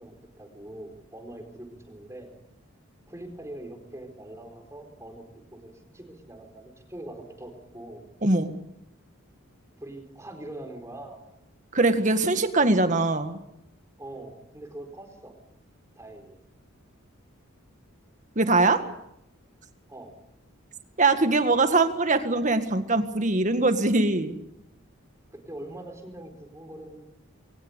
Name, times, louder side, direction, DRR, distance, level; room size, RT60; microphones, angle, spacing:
voice 1, 0.0-2.3 3.1-5.2 5.5-8.0 9.8-11.2 14.0-15.4 16.0-16.4 19.9-20.1 25.3-27.0, right 1 dB, 15° right, 4 dB, 4.3 m, -43 dB
voice 2, 8.2-8.5 11.7-13.4 18.4-18.8 21.0-24.4, right 2 dB, 35° right, 9 dB, 1.8 m, -22 dB
22.0 x 19.5 x 8.3 m, 0.78 s
head